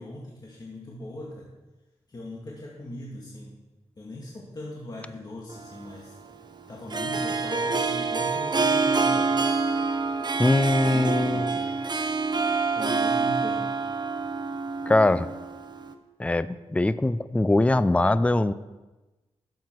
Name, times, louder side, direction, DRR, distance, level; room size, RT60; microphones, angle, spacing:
voice 1, 0.0-1.5 2.1-3.5 4.0-6.1 6.7-9.4 10.8-11.7 12.8-13.8, left 1 dB, 35° left, 1.9 m, -39 dB
Harp, 5.5-15.9, right 4 dB, 40° right, 1.0 m, -27 dB
voice 2, 10.4-11.6 14.9-15.3 16.2-18.5, left 2 dB, 10° left, 0.4 m, -22 dB
12.0 x 7.8 x 4.6 m
cardioid pair, 75°, 11 cm